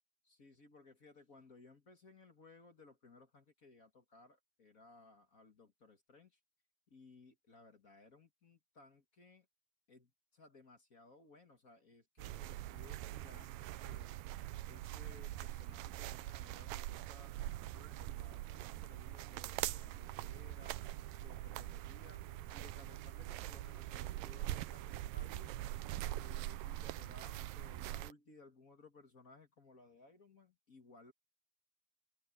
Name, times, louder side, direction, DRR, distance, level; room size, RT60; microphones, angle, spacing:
voice 1, 0.2-6.4 6.9-9.5 9.9-14.1 14.7-20.8 21.2-22.2 22.5-25.6 26.1-31.1, left 3 dB, 35° left, 1.6 m, -61 dB
sound 1, 12.2-28.1, right 15 dB, 85° right, 2.4 m, -43 dB
sound 2, 20.0-26.1, right 5 dB, 65° right, 2.3 m, -66 dB
open air
omnidirectional pair, 3.9 m